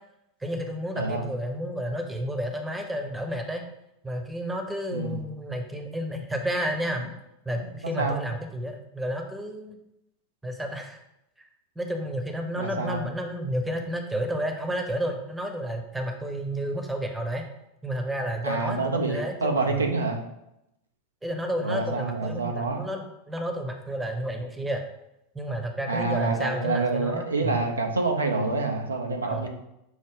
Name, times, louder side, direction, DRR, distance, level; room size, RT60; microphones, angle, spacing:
voice 1, 0.4-3.6 4.0-7.2 7.5-9.8 10.4-11.0 11.8-17.5 17.8-19.9 21.2-24.8 25.3-27.6 29.3-29.5, equal, 10° right, 4 dB, 0.7 m, -31 dB
voice 2, 0.9-1.3 4.9-5.2 7.8-8.2 12.6-13.0 18.4-20.2 21.6-22.9 25.9-29.5, right 3 dB, 85° right, 3 dB, 0.5 m, -27 dB
6.2 x 2.1 x 3.7 m, 0.85 s
figure-of-eight pair, 85°, 0 cm